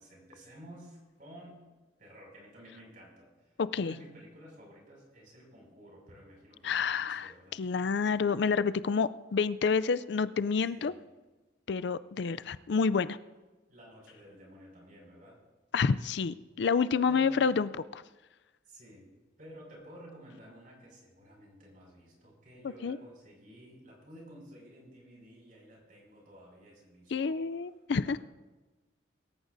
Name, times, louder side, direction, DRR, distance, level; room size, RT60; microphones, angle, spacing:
voice 1, 0.0-1.6 2.0-7.6 10.7-11.1 13.7-15.4 17.0-17.5 18.7-19.1 19.4-27.7 28.0-28.2, equal, 45° right, -2 dB, 5.9 m, -53 dB
voice 2, 3.6-3.9 6.6-7.3 7.6-10.9 11.7-13.2 15.7-18.0 22.8-23.0 27.1-28.2, left 5 dB, 65° left, 15 dB, 0.4 m, -29 dB
24.0 x 14.0 x 2.7 m, 1.2 s
head